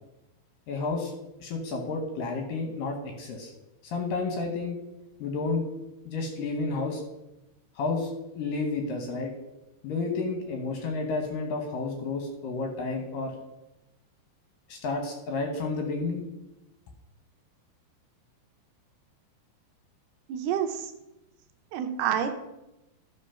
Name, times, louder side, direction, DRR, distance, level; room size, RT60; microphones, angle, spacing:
voice 1, 0.7-1.1 1.4-3.5 3.8-4.8 5.2-5.6 6.1-7.0 7.8-8.1 8.4-9.3 9.8-13.3 14.7-16.2, left 3 dB, 70° left, 3 dB, 2.4 m, -31 dB
voice 2, 20.3-20.9 21.7-22.3, right 9 dB, 80° right, 7 dB, 2.7 m, -28 dB
12.5 x 5.4 x 5.6 m, 0.95 s
omnidirectional pair, 4.9 m